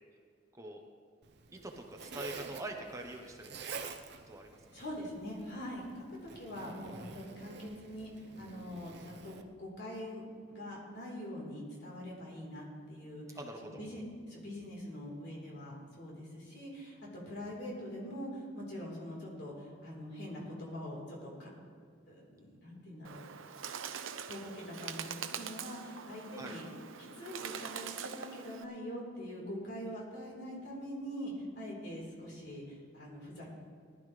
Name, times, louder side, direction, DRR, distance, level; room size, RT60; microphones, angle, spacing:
Zipper (clothing), 1.2-9.4, right 4 dB, 55° right, 0.8 m, -48 dB
voice 1, 1.5-3.7 4.3-4.5 13.3-13.8 26.4-26.5, right 1 dB, 15° right, 2 dB, 0.8 m, -44 dB
voice 2, 4.7-10.2 10.5-14.0 14.3-21.5 22.1-23.2 24.3-26.7 27.0-33.5, equal, 55° left, -3 dB, 4.0 m, -44 dB
Bird, 23.0-28.6, right 7 dB, 90° right, 0.7 m, -43 dB
19.0 x 12.0 x 3.3 m, 2.1 s
head